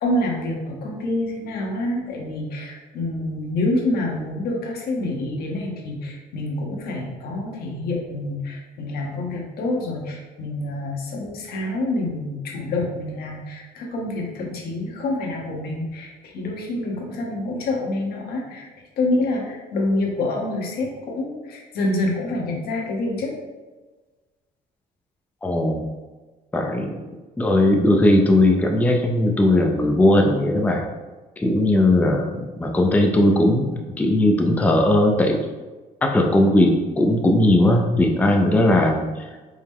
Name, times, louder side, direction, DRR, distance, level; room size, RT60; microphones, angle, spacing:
voice 1, 0.0-18.7 19.0-23.3, left 2 dB, 70° left, 0 dB, 1.0 m, -27 dB
voice 2, 25.4-25.9 26.5-26.9 27.4-30.8 31.4-35.4 36.0-39.1, left 1 dB, 10° left, 2 dB, 0.4 m, -18 dB
4.7 x 2.1 x 3.6 m, 1.3 s
cardioid pair, 110°, 17 cm